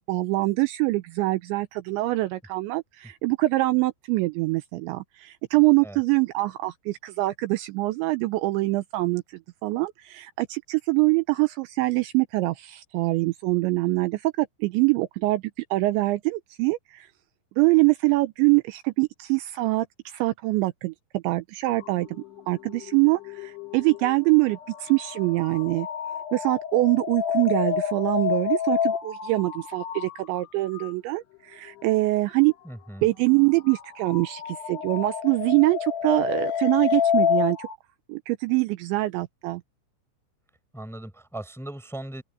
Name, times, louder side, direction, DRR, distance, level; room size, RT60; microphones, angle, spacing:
voice 1, 0.1-9.2 9.6-15.4 15.7-17.1 17.6-25.9 26.3-32.5 33.0-37.7 38.1-39.6, right 21 dB, 85° right, 2.7 m, -24 dB
sound 1, 21.7-30.9 31.7-31.9 33.4-37.7, left 8 dB, 55° left, 4.6 m, -29 dB
voice 2, 32.6-33.1 40.7-42.2, right 1 dB, ahead, 6.6 m, -38 dB
open air
omnidirectional pair, 5.8 m